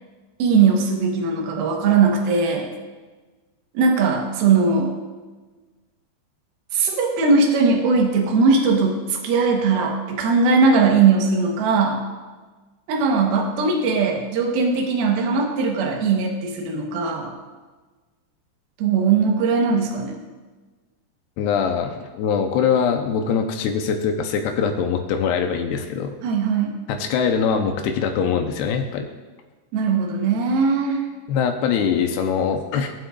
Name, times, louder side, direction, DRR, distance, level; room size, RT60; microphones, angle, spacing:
voice 1, 0.4-2.7 3.7-4.9 6.7-12.0 12.9-17.4 18.8-20.2 26.2-26.7 29.7-31.0, right 4 dB, 70° right, 1 dB, 3.0 m, -19 dB
voice 2, 21.4-26.2 26.9-29.1 31.3-32.9, left 6 dB, 80° left, 5 dB, 2.8 m, -22 dB
20.5 x 7.8 x 2.5 m, 1.3 s
omnidirectional pair, 4.8 m